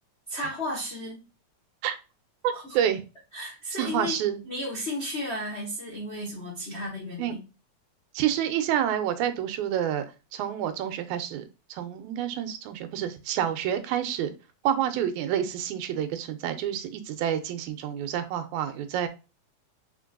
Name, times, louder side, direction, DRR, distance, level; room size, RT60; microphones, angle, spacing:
voice 1, 0.3-1.2 2.5-2.6 3.3-4.1 4.4-7.4, left 1 dB, 45° left, -6 dB, 0.8 m, -33 dB
voice 2, 2.4-3.0 3.8-4.4 7.2-7.3 8.1-10.1 10.3-14.3 14.6-19.1, right 10 dB, 85° right, 9 dB, 2.0 m, -28 dB
4.4 x 4.0 x 2.4 m, 0.30 s
omnidirectional pair, 3.4 m